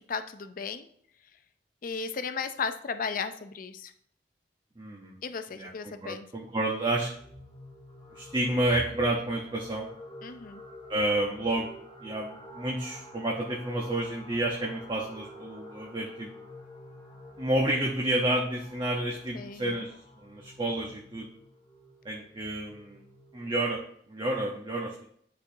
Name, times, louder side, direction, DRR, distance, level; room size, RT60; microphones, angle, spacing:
voice 1, 0.1-0.9 1.8-3.9 5.2-6.3 10.2-10.6 19.3-19.9, left 5 dB, 50° left, 10 dB, 0.5 m, -35 dB
voice 2, 4.8-5.1 5.5-7.1 8.1-9.9 10.9-11.7 12.0-16.3 17.4-19.9 20.2-21.3 22.0-23.0 23.3-23.8 24.1-25.0, right 1 dB, 25° right, -1 dB, 0.8 m, -30 dB
sound 1, 7.1-23.5, left 1 dB, 20° left, 1.9 m, -49 dB
10.5 x 4.3 x 2.6 m, 0.65 s
head